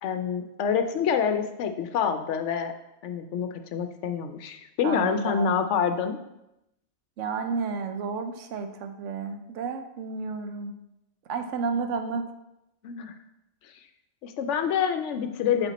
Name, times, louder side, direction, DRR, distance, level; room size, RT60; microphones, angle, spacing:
voice 1, 0.0-2.7 3.0-6.2 12.8-13.1 14.2-15.7, left 7 dB, 70° left, 8 dB, 0.8 m, -27 dB
voice 2, 4.8-5.5 7.2-10.7 11.3-12.2, right 5 dB, 70° right, 7 dB, 0.9 m, -31 dB
8.2 x 3.6 x 4.0 m, 0.90 s
omnidirectional pair, 1.4 m